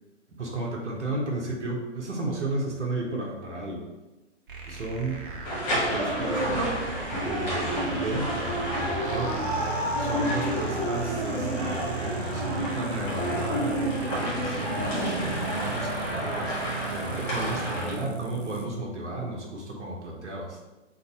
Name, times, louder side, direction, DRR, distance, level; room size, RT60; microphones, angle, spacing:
voice 1, 0.4-3.9 4.7-5.2 5.7-6.4 7.1-9.5 10.0-20.6, right 1 dB, 70° right, -2 dB, 1.0 m, -33 dB
sound 1, 4.5-18.7, right 6 dB, 45° right, 0.6 m, -37 dB
sound 2, 5.4-17.9, equal, 10° left, 0.5 m, -29 dB
3.8 x 2.2 x 4.0 m, 1.1 s
figure-of-eight pair, 130°, 37 cm